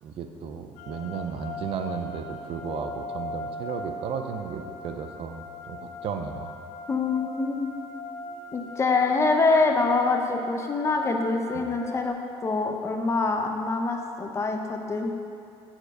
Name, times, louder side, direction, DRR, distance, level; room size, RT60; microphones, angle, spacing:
voice 1, 0.0-6.6 11.5-11.8, right 6 dB, 60° right, 6 dB, 0.6 m, -34 dB
sound 1, 0.8-12.1, left 2 dB, 80° left, 0.6 m, -40 dB
voice 2, 6.9-7.7 8.5-12.2 12.4-15.1, left 3 dB, 25° left, 3 dB, 0.7 m, -25 dB
7.2 x 4.5 x 6.6 m, 2.6 s
cardioid pair, 130°, 11 cm